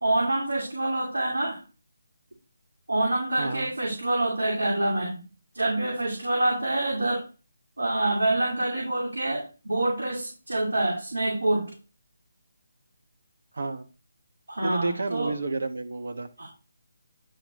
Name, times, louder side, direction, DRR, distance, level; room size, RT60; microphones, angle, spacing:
voice 1, 0.0-1.6 2.9-5.2 5.5-7.3 7.8-11.7 14.5-15.3 16.4-16.5, right 2 dB, 85° right, -3 dB, 2.7 m, -26 dB
voice 2, 3.4-3.7 13.5-13.9 14.6-16.3, right 3 dB, 65° right, 7 dB, 1.3 m, -30 dB
9.7 x 3.6 x 3.7 m, 0.31 s
figure-of-eight pair, 155°, 0 cm